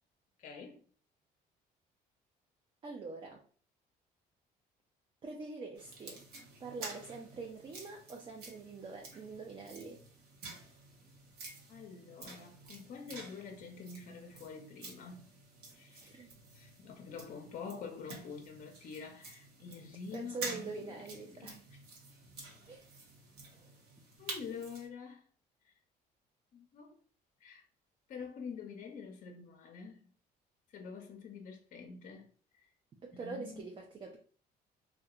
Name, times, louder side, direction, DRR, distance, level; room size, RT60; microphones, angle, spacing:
voice 1, 0.4-0.9 11.7-15.3 15.7-21.8 24.2-25.2 25.6-25.7 26.5-27.0 27.4-27.6 28.1-30.1 30.7-32.3 32.5-32.7 33.1-33.7, left 5 dB, 50° left, 0.5 m, -47 dB
voice 2, 2.8-3.4 5.2-6.2 6.6-10.0 16.0-16.3 20.1-21.6 22.7-22.9 33.0-34.2, right 4 dB, 30° right, 0.4 m, -44 dB
sound 1, 5.7-24.9, right 3 dB, 70° right, 0.8 m, -50 dB
2.7 x 2.1 x 2.3 m
cardioid pair, 110°, 17 cm